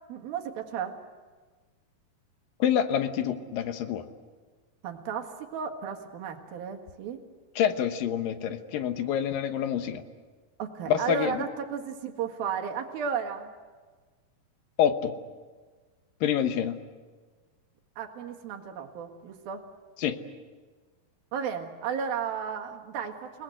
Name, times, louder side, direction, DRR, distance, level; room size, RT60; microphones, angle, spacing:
voice 1, 0.1-1.0 4.8-7.2 10.6-13.5 18.0-19.6 21.3-23.4, right 7 dB, 90° right, 4 dB, 3.6 m, -34 dB
voice 2, 2.6-4.0 7.6-10.0 10.9-11.4 14.8-15.1 16.2-16.8 20.0-20.2, left 9 dB, 75° left, 8 dB, 2.8 m, -27 dB
29.5 x 19.0 x 7.9 m, 1.4 s
omnidirectional pair, 4.1 m